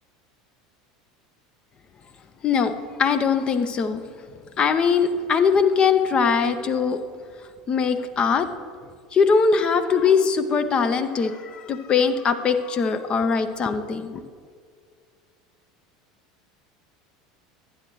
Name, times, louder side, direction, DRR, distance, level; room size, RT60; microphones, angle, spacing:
voice 1, 2.4-4.0 4.6-7.0 7.7-8.5 9.1-14.2, left 5 dB, 35° left, 10 dB, 0.6 m, -21 dB
11.0 x 9.1 x 3.0 m, 2.1 s
hypercardioid pair, 80°, 3 cm